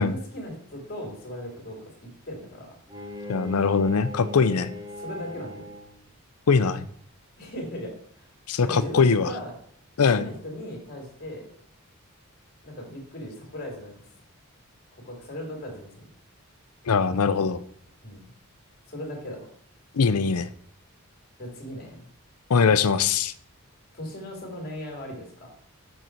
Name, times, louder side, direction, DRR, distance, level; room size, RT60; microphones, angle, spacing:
voice 1, 0.0-2.8 5.0-5.7 7.4-8.3 8.6-9.5 10.1-11.5 12.6-14.1 14.9-16.0 18.0-18.2 18.9-19.5 21.4-22.0 23.9-25.5, equal, 45° left, 0 dB, 2.5 m, -37 dB
Bowed string instrument, 2.9-6.1, left 1 dB, 15° right, 1.0 m, -39 dB
voice 2, 3.3-4.7 6.5-6.8 8.5-9.3 10.0-10.3 16.9-17.6 19.9-20.5 22.5-23.3, left 5 dB, 80° left, 14 dB, 0.6 m, -21 dB
6.7 x 6.5 x 4.5 m, 0.63 s
head